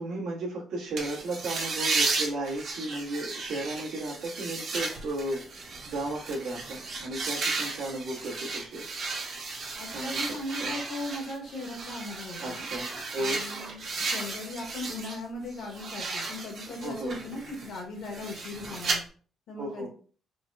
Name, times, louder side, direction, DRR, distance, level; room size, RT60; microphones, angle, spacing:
voice 1, 0.0-5.4 5.8-8.9 9.9-10.2 10.6-10.7 12.4-13.4 16.8-17.2 19.6-19.9, right 2 dB, 80° right, -6 dB, 1.4 m, -34 dB
sound 1, 1.0-15.2 15.5-19.0, right 3 dB, 65° right, 1.2 m, -34 dB
voice 2, 9.8-12.6 13.2-19.0 19.5-19.9, left 2 dB, 70° left, 0 dB, 1.4 m, -38 dB
4.6 x 2.2 x 2.6 m, 0.42 s
cardioid pair, 90°, 0 cm